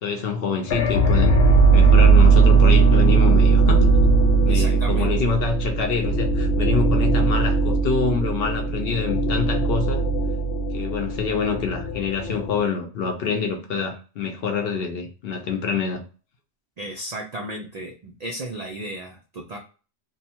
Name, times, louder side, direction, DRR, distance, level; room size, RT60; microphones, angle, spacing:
voice 1, 0.0-1.4 1.7-3.9 4.4-10.0 10.7-16.0, left 5 dB, 65° left, 0.7 m, -26 dB
sound 1, 0.7-12.6, right 4 dB, 90° left, 1.0 m, -18 dB
voice 2, 4.5-5.1 16.8-19.6, right 1 dB, 75° right, 0.3 m, -34 dB
2.7 x 2.2 x 2.7 m
omnidirectional pair, 1.2 m